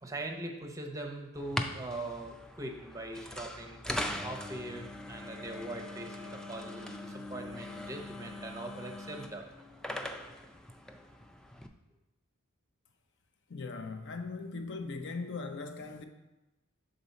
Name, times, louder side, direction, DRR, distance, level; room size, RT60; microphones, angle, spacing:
voice 1, 0.0-3.8 4.2-9.5, right 1 dB, 15° right, 0.7 m, -41 dB
sound 1, 1.3-11.7, left 1 dB, 5° left, 0.3 m, -41 dB
voice 2, 13.5-16.0, left 4 dB, 55° left, 0.6 m, -39 dB
6.9 x 4.0 x 4.0 m
head